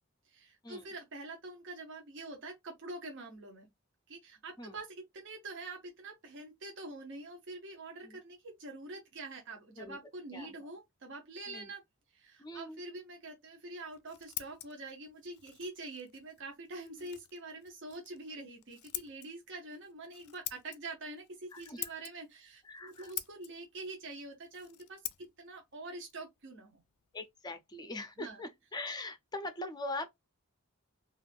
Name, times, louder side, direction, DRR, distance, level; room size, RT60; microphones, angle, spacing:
voice 1, 0.3-3.7 4.1-11.8 12.1-26.8 28.2-28.4, right 2 dB, 55° right, 0.7 m, -45 dB
voice 2, 10.3-10.7 11.5-11.7 12.4-12.8 17.0-17.1 21.5-21.8 22.6-23.1 27.1-30.1, left 2 dB, 20° left, 0.5 m, -42 dB
Scissors, 13.8-27.3, left 15 dB, 75° left, 0.4 m, -48 dB
2.4 x 2.4 x 3.4 m
head